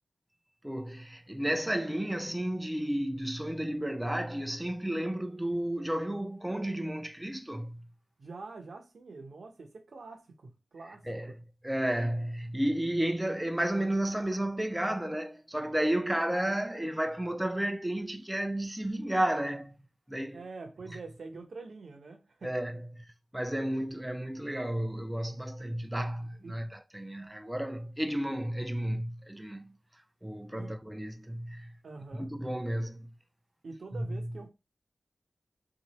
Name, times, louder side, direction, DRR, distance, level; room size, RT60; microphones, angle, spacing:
voice 1, 0.6-7.8 11.1-11.3 11.6-19.8 20.1-20.4 22.4-23.1 23.3-29.8 30.2-31.7 32.2-33.1 34.0-34.2, right 1 dB, 10° right, 0.5 m, -32 dB
voice 2, 8.2-11.3 20.3-22.6 26.4-26.6 30.5-30.7 31.8-32.3 33.6-34.5, right 3 dB, 75° right, 0.8 m, -46 dB
3.0 x 2.5 x 4.1 m
cardioid pair, 45°, 0 cm